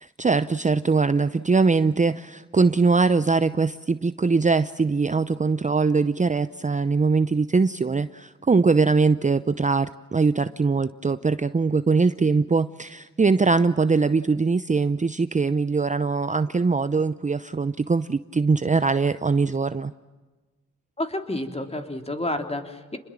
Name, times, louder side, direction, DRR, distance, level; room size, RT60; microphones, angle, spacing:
voice 1, 0.0-19.9, right 4 dB, 25° right, 13 dB, 0.7 m, -22 dB
voice 2, 21.0-23.0, left 1 dB, 20° left, 5 dB, 3.3 m, -30 dB
28.5 x 21.5 x 7.5 m, 1.3 s
cardioid pair, 60°, 29 cm